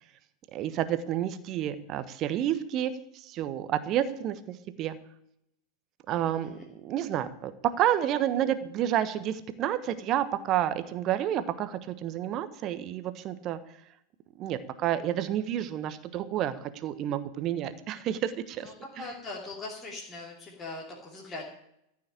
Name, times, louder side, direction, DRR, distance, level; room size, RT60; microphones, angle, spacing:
voice 1, 0.5-5.0 6.1-7.5 7.8-13.6 14.4-18.7 19.0-19.1, right 11 dB, 35° right, 13 dB, 1.2 m, -30 dB
voice 2, 18.6-21.5, left 3 dB, 20° left, -3 dB, 3.1 m, -41 dB
14.5 x 6.4 x 8.8 m, 0.76 s
figure-of-eight pair, 90°, 0 cm